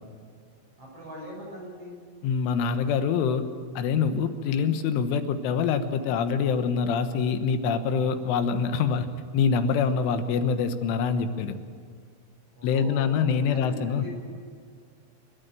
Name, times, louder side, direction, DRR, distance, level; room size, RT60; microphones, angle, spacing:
voice 1, 0.8-2.0 12.5-14.2, equal, 30° right, -2 dB, 7.0 m, -41 dB
voice 2, 2.2-3.4 3.8-9.1 9.3-11.6 12.6-14.1, left 6 dB, 80° left, 8 dB, 3.7 m, -25 dB
29.0 x 13.0 x 9.2 m, 2.1 s
omnidirectional pair, 5.6 m